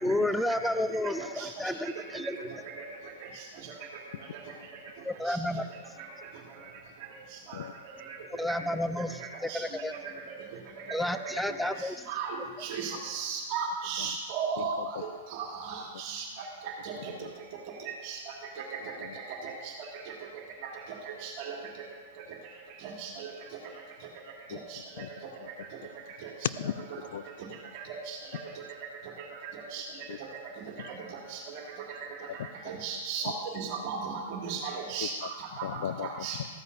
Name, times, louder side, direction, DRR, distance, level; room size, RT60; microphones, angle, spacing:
voice 1, 0.0-2.5 5.0-5.7 8.3-9.9 10.9-12.1, left 1 dB, 5° left, 10 dB, 0.5 m, -31 dB
voice 2, 12.6-15.0 15.4-16.2 16.8-16.9 18.0-18.2 21.4-21.5 23.0-23.3 28.1-28.2 29.7-29.8 32.7-35.1 35.6-35.7 36.0-36.4, right 6 dB, 45° right, 0 dB, 2.1 m, -34 dB
voice 3, 26.4-27.2 30.1-30.2 30.8-30.9 32.4-32.5 35.0-35.1 35.6-36.5, left 10 dB, 60° left, 15 dB, 0.4 m, -37 dB
14.5 x 13.5 x 2.7 m, 1.5 s
figure-of-eight pair, 100°, 0 cm